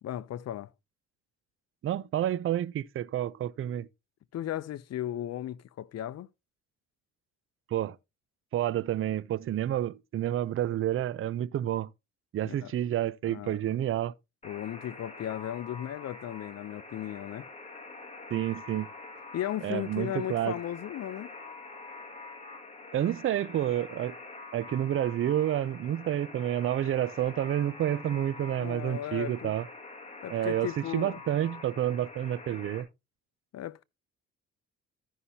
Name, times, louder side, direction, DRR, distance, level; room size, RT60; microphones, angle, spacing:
voice 1, 0.0-0.7 4.3-6.3 12.4-12.7 13.2-13.6 14.4-17.5 19.3-21.3 28.5-29.6 30.2-31.2 33.5-33.8, left 12 dB, 55° left, 0.6 m, -36 dB
voice 2, 1.8-3.9 7.7-8.0 8.5-11.9 12.3-14.1 18.3-18.9 19.6-20.6 22.9-24.2 24.5-29.6 30.3-32.9, right 11 dB, 45° right, 0.5 m, -29 dB
Alarm, 14.4-32.8, left 3 dB, 20° left, 1.9 m, -46 dB
14.5 x 5.6 x 2.8 m
cardioid pair, 90°, 30 cm